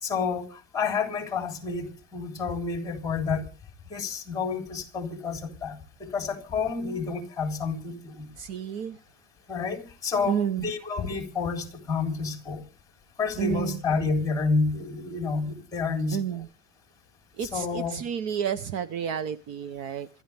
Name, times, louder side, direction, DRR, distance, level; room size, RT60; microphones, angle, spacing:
voice 1, 0.0-3.5 3.9-8.3 9.5-12.6 13.2-16.2 17.4-18.0, left 4 dB, 10° left, 3.9 m, -29 dB
voice 2, 8.4-9.0 10.3-10.7 13.4-13.8 16.1-16.5 17.4-20.1, right 8 dB, 50° right, 0.9 m, -30 dB
27.5 x 12.0 x 3.5 m
cardioid pair, 180°, 34 cm